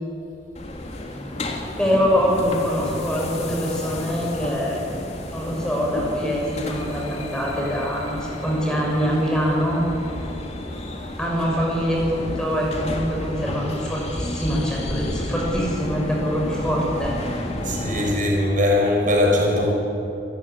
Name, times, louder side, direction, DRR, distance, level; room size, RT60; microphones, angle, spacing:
sound 1, 0.5-18.1, left 1 dB, 40° left, 2.8 m, -31 dB
voice 1, 1.8-4.8 5.3-9.8 11.2-17.1, equal, 5° left, -3 dB, 6.4 m, -24 dB
voice 2, 17.6-19.7, left 1 dB, 45° right, -1 dB, 5.9 m, -20 dB
28.0 x 15.0 x 9.9 m, 2.9 s
head